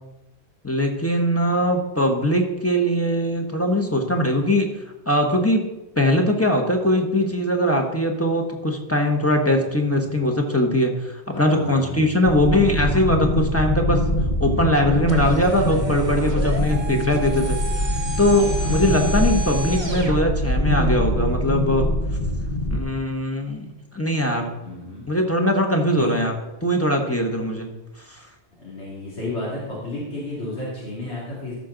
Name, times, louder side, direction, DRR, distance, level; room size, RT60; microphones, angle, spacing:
voice 1, 0.6-4.7 5.1-5.6 6.0-14.0 14.4-17.9 18.2-21.9 22.7-24.5 25.1-26.3 26.6-27.7 28.1-28.3, left 1 dB, 15° left, 2 dB, 1.0 m, -21 dB
voice 2, 9.5-10.2 11.3-12.1 16.1-16.7 18.6-18.9 24.6-25.0 25.9-26.1 28.6-31.6, left 2 dB, 80° left, -7 dB, 2.8 m, -33 dB
sound 1, 12.2-22.8, left 1 dB, 45° left, 1.1 m, -23 dB
sound 2, 15.1-20.2, right 3 dB, 25° right, 0.9 m, -32 dB
13.5 x 6.0 x 3.9 m, 1.0 s
omnidirectional pair, 1.1 m